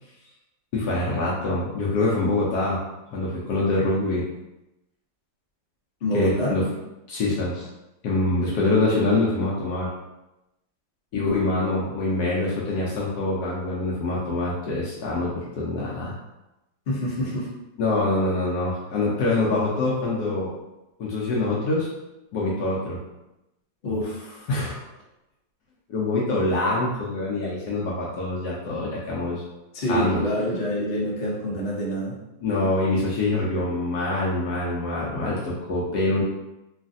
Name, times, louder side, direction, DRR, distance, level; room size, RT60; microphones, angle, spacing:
voice 1, 0.7-2.8 3.1-4.2 6.1-6.7 7.1-7.7 8.0-9.9 11.1-16.2 17.8-20.5 21.0-21.9 22.3-23.0 24.5-24.7 25.9-29.4 29.9-30.2 32.4-36.2, left 2 dB, 70° left, -5 dB, 1.0 m, -25 dB
voice 2, 6.0-6.6 11.1-11.4 16.9-17.5 23.8-24.5 29.7-32.2, equal, 55° left, -5 dB, 0.7 m, -27 dB
3.1 x 2.4 x 2.5 m, 0.96 s
omnidirectional pair, 2.1 m